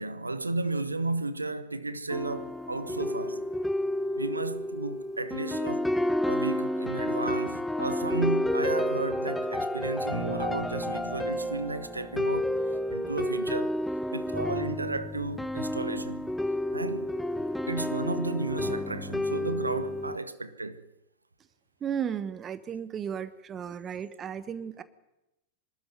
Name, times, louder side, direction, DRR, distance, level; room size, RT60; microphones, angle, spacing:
voice 1, 0.0-3.5 4.2-5.9 6.3-12.5 12.9-13.8 14.1-16.3 16.7-17.1 17.7-20.8, right 2 dB, 80° right, 1.0 m, -33 dB
sound 1, 2.1-20.2, left 1 dB, 5° left, 0.7 m, -30 dB
voice 2, 21.8-24.8, right 8 dB, 25° right, 1.1 m, -34 dB
24.0 x 13.0 x 9.5 m
figure-of-eight pair, 90°, 0 cm